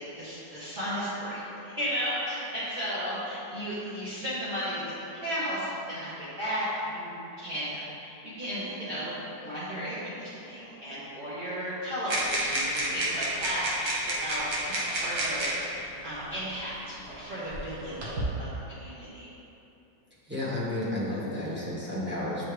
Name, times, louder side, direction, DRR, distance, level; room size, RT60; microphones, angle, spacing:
voice 1, 0.2-19.3, equal, 30° right, -12 dB, 1.1 m, -34 dB
sound 1, 12.1-15.7 16.7-16.8 17.5-18.3, right 1 dB, 60° right, 1.4 m, -30 dB
voice 2, 20.3-22.4, left 1 dB, 5° right, -8 dB, 1.0 m, -32 dB
9.4 x 3.2 x 3.3 m, 2.9 s
omnidirectional pair, 2.0 m